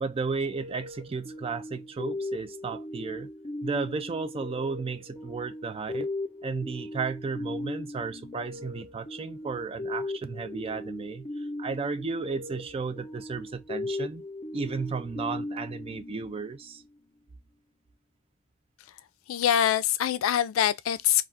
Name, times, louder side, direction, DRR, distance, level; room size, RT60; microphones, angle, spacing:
voice 1, 0.0-3.3 3.6-6.1 6.4-14.2 14.5-16.8, right 4 dB, 30° right, 0.3 m, -34 dB
sound 1, 0.5-16.9, left 2 dB, 25° left, 0.6 m, -38 dB
voice 2, 19.3-21.2, left 10 dB, 85° left, 0.3 m, -24 dB
2.4 x 2.3 x 3.5 m
head